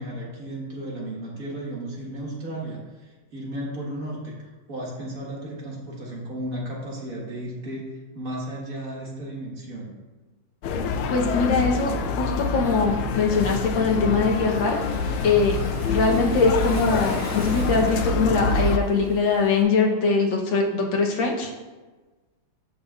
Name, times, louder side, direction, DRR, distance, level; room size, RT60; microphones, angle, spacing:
voice 1, 0.0-4.4 4.7-9.9, right 1 dB, 45° right, -4 dB, 1.9 m, -34 dB
sound 1, 10.6-18.8, left 4 dB, 90° left, 1.5 m, -26 dB
voice 2, 11.1-14.8 15.2-15.6 15.9-21.5, left 4 dB, 70° left, 0 dB, 1.7 m, -22 dB
Waves surf, 14.4-19.6, equal, 10° right, 1.2 m, -39 dB
13.5 x 5.3 x 2.4 m, 1.2 s
omnidirectional pair, 2.2 m